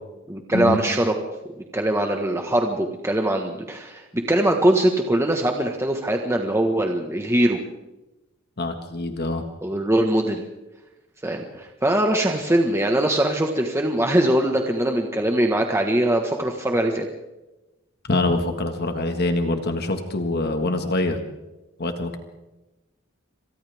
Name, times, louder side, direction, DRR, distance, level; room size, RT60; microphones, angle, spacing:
voice 1, 0.3-1.2 1.7-7.6 9.6-10.4 11.2-17.1, right 1 dB, 15° right, 3 dB, 1.6 m, -22 dB
voice 2, 8.6-9.4 18.1-21.2 21.8-22.2, left 2 dB, 55° left, 6 dB, 1.8 m, -24 dB
28.5 x 26.0 x 3.6 m, 1.0 s
head